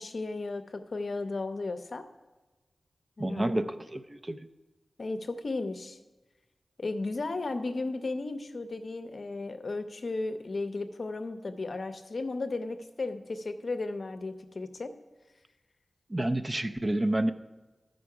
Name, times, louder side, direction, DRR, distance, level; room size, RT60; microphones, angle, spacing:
voice 1, 0.0-2.1 3.2-3.5 5.0-6.0 6.8-14.9, left 3 dB, 55° left, 8 dB, 0.6 m, -35 dB
voice 2, 3.2-4.5 16.1-17.3, right 1 dB, 30° right, 9 dB, 0.4 m, -29 dB
13.5 x 5.1 x 4.8 m, 1.2 s
wide cardioid pair, 75°, 0 cm